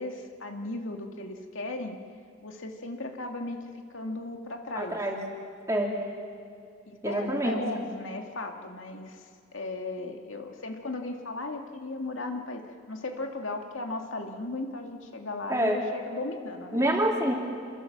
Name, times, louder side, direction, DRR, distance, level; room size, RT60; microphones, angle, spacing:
voice 1, 0.0-2.0 2.4-3.6 3.9-5.0 6.9-9.2 9.5-16.8, left 2 dB, 80° left, 3 dB, 2.2 m, -36 dB
voice 2, 4.7-5.2 5.7-6.0 7.0-7.5 15.5-15.8 16.7-17.3, right 1 dB, 15° right, -1 dB, 3.3 m, -26 dB
27.5 x 23.0 x 7.4 m, 2.4 s
head